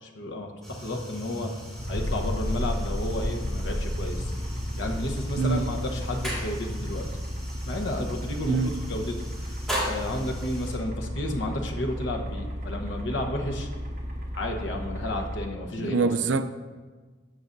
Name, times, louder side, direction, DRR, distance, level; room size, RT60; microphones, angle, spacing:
voice 1, 0.0-1.6 1.9-4.3 4.8-7.1 7.6-9.1 9.4-13.7 14.3-16.1, left 1 dB, 90° left, 1.0 m, -32 dB
sound 1, 0.6-10.8, equal, ahead, 1.9 m, -37 dB
sound 2, 1.8-15.5, equal, 45° right, 1.4 m, -35 dB
sound 3, 1.9-8.3, left 1 dB, 40° left, 0.4 m, -34 dB
voice 2, 15.8-16.5, right 4 dB, 85° right, 0.4 m, -25 dB
12.5 x 6.9 x 2.6 m
head